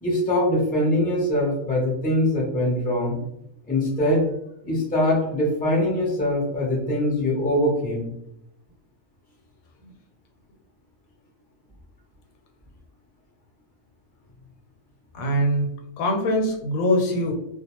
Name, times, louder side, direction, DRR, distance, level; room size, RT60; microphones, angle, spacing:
voice 1, 0.0-3.2 3.7-4.3 4.6-8.1, left 1 dB, 10° left, -4 dB, 0.4 m, -23 dB
voice 2, 15.1-17.3, equal, 90° left, 2 dB, 1.1 m, -23 dB
2.4 x 2.1 x 2.8 m, 0.78 s
omnidirectional pair, 1.4 m